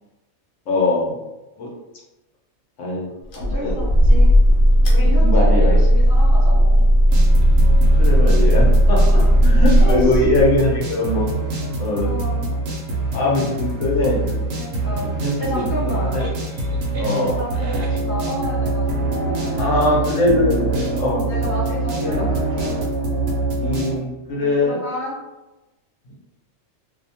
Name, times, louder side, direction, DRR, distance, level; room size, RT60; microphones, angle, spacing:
voice 1, 0.7-1.2 1.6-1.7 2.8-3.1 3.6-3.8 5.0-5.8 7.9-11.3 11.8-12.1 13.1-14.4 15.0-15.6 16.0-16.3 17.0-17.4 19.6-21.2 22.0-22.2 23.6-24.8 26.1-26.2, left 2 dB, 70° left, -3 dB, 1.0 m, -21 dB
sound 1, 3.3-10.7, equal, 90° left, 1.1 m, -14 dB
voice 2, 3.3-4.3 4.9-6.8 9.0-9.4 9.8-10.2 11.9-12.5 14.5-16.2 16.9-19.6 21.0-22.7 24.3-25.2, equal, 20° right, -9 dB, 0.6 m, -30 dB
golden offspring, 7.1-24.0, right 2 dB, 75° right, 1.0 m, -24 dB
2.7 x 2.1 x 2.7 m, 1.0 s
omnidirectional pair, 1.4 m